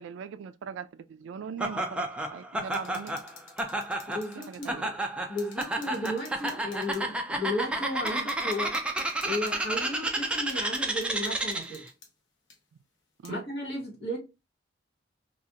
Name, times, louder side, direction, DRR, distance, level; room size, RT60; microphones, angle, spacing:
voice 1, 0.0-3.2 4.4-4.8 13.2-13.4, right 6 dB, 85° right, 0.3 m, -40 dB
Laughter, 1.6-11.8, right 1 dB, 5° right, 0.3 m, -31 dB
sound 1, 2.6-4.7 5.0-5.1 5.4-7.0 7.6-7.7 8.1-9.7 10.5-12.1 12.5-12.6 13.2-13.3, left 5 dB, 85° left, 0.8 m, -51 dB
voice 2, 4.1-5.0 5.3-8.7 9.2-11.9 13.3-14.2, left 1 dB, 60° left, 1.3 m, -34 dB
2.4 x 2.4 x 2.8 m
head